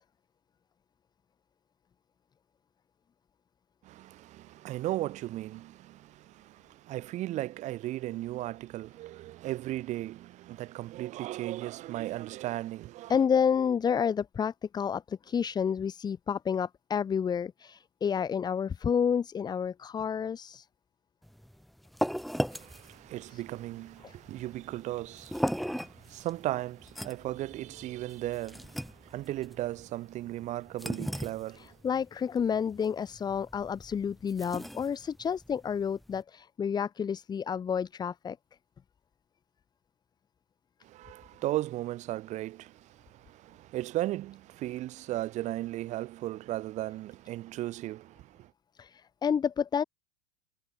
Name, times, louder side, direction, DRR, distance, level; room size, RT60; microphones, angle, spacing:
voice 1, 3.8-13.2 22.5-31.8 40.8-48.5, right 15 dB, 45° right, 1.8 m, -36 dB
voice 2, 13.1-20.6 23.3-23.4 24.0-24.1 31.6-38.4 48.8-49.8, left 7 dB, 25° left, 1.5 m, -30 dB
sound 1, 21.2-36.2, equal, ahead, 1.6 m, -38 dB
hypercardioid pair, 95°, 17 cm